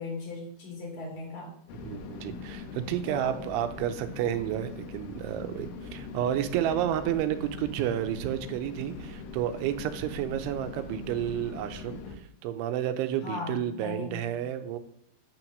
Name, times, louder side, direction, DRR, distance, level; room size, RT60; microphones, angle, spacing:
voice 1, 0.0-1.5 3.1-3.3 13.2-14.3, left 3 dB, 30° left, -1 dB, 3.4 m, -37 dB
sound 1, 1.7-12.2, left 4 dB, 80° left, 3.6 m, -41 dB
voice 2, 1.8-12.0 12.4-14.8, right 11 dB, 85° right, 9 dB, 3.1 m, -31 dB
9.4 x 5.9 x 7.6 m, 0.67 s
omnidirectional pair, 5.5 m